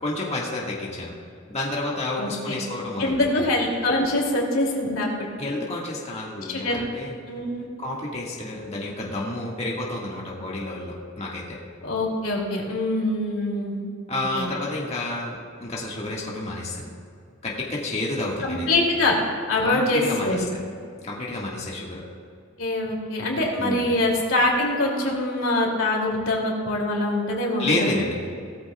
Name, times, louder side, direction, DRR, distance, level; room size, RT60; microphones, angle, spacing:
voice 1, 0.0-1.1 1.5-3.3 5.4-7.1 7.8-11.6 14.1-16.9 17.4-18.7 19.6-20.4 21.0-22.0 23.6-23.9 27.6-28.1, left 2 dB, 30° left, -4 dB, 1.8 m, -30 dB
voice 2, 2.2-2.6 3.0-5.1 5.4-5.5 6.4-6.8 7.3-7.7 11.8-13.8 14.4-14.5 18.4-19.2 19.5-20.4 22.6-28.0, left 2 dB, 80° left, -2 dB, 2.8 m, -24 dB
18.5 x 13.5 x 2.4 m, 2.4 s
head